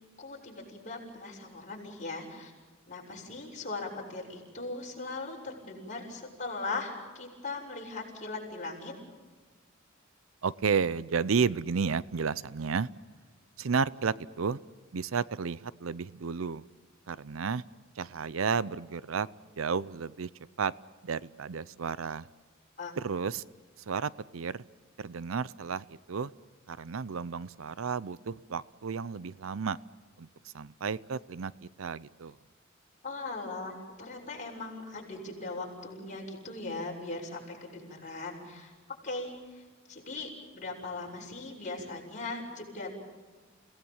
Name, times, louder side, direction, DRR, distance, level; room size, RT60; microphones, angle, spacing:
voice 1, 0.2-2.5 2.9-8.9 22.8-22.9 33.0-38.7 39.0-40.3 40.5-42.9, left 3 dB, 40° left, -1 dB, 6.5 m, -39 dB
voice 2, 10.4-12.9 13.6-14.6 14.9-16.6 17.1-17.6 18.0-19.3 19.6-20.3 20.6-20.7 21.0-22.3 23.0-23.4 23.9-24.6 25.0-26.3 26.7-29.8 30.2-31.5 31.8-32.4, right 5 dB, 75° right, 19 dB, 0.6 m, -32 dB
30.0 x 18.0 x 7.2 m, 1.4 s
head